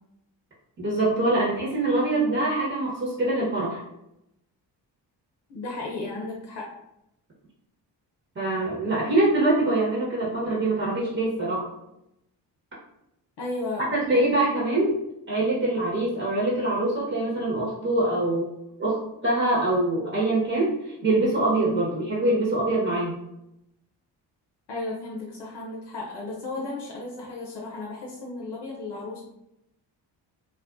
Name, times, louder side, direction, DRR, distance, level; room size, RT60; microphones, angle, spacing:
voice 1, 0.8-3.8 8.3-11.6 13.9-14.9 15.3-18.5 18.8-20.8 21.0-23.2, right 2 dB, 25° right, -6 dB, 1.0 m, -24 dB
voice 2, 5.5-6.7 13.4-14.3 24.7-29.2, left 2 dB, 65° left, -2 dB, 0.7 m, -34 dB
2.4 x 2.2 x 2.5 m, 0.83 s
supercardioid pair, 50°, 45 cm